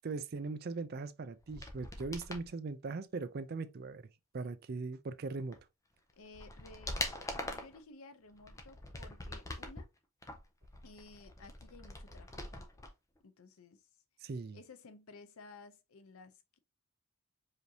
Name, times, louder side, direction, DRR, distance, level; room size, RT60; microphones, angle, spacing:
voice 1, 0.0-4.1 4.3-5.6 14.2-14.6, right 3 dB, 45° right, 0.4 m, -40 dB
sound 1, 1.4-2.5 5.5-5.6 6.1-7.8 8.3-9.8 10.2-12.9 13.2-13.3, left 2 dB, 15° left, 0.6 m, -43 dB
voice 2, 6.1-7.0 7.3-9.9 10.8-12.6 13.2-13.9 14.5-16.6, left 3 dB, 85° left, 0.6 m, -55 dB
5.0 x 2.7 x 2.7 m
head